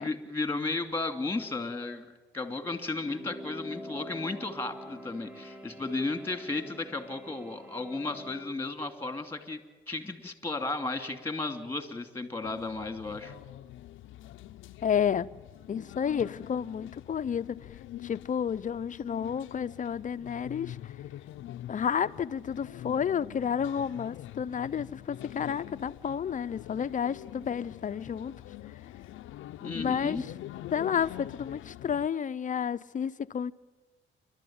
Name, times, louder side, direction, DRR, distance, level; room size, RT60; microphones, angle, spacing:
voice 1, 0.0-9.6 9.9-13.3 29.6-30.2, left 3 dB, 10° left, 2.6 m, -34 dB
sound 1, 2.8-8.5, equal, 10° right, 1.9 m, -45 dB
sound 2, 12.4-32.1, left 13 dB, 80° left, 0.6 m, -45 dB
voice 2, 14.8-15.3 15.7-17.6 18.0-20.9 21.7-28.3 29.7-30.2 30.7-33.5, left 8 dB, 40° left, 0.7 m, -31 dB
29.0 x 12.5 x 8.8 m
cardioid pair, 90°, 20 cm